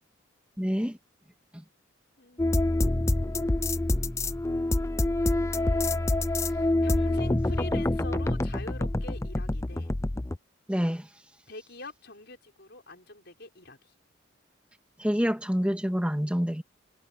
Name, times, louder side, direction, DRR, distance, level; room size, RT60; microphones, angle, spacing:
voice 1, 0.6-1.0 1.5-1.6 10.7-11.1 15.0-16.6, equal, 5° right, 2.1 m, -27 dB
voice 2, 2.2-3.2 5.5-9.9 11.5-13.9, left 2 dB, 55° left, 6.2 m, -45 dB
sound 1, 2.4-10.4, left 2 dB, 15° left, 0.5 m, -26 dB
head